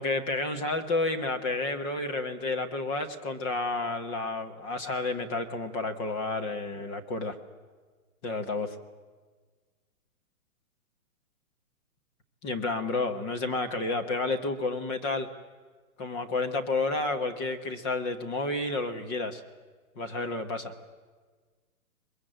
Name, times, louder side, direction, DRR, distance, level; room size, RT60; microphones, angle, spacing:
voice 1, 0.0-7.4 8.2-8.7 12.4-15.3 16.0-19.4 20.0-20.7, left 2 dB, 20° left, 6 dB, 1.2 m, -30 dB
22.5 x 22.0 x 9.0 m, 1.4 s
hypercardioid pair, 165°, 44 cm